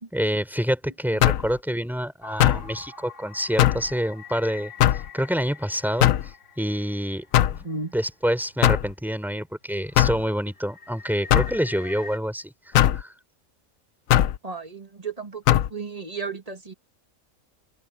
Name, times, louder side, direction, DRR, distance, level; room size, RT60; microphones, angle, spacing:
voice 1, 0.1-13.1, equal, ahead, 3.5 m, -27 dB
sound 1, 1.2-1.5 2.4-2.7 3.6-3.9 4.8-5.1 6.0-6.3 7.3-7.6 8.6-8.9 10.0-10.2 11.3-11.6 12.7-13.0 14.1-14.4 15.5-15.7, left 13 dB, 80° left, 1.1 m, -19 dB
sound 2, 2.2-8.0 8.5-8.6 9.2-9.4 9.8-12.2, left 4 dB, 60° left, 3.0 m, -44 dB
voice 2, 7.6-7.9 14.4-16.7, right 4 dB, 25° right, 2.1 m, -34 dB
open air
omnidirectional pair, 1.4 m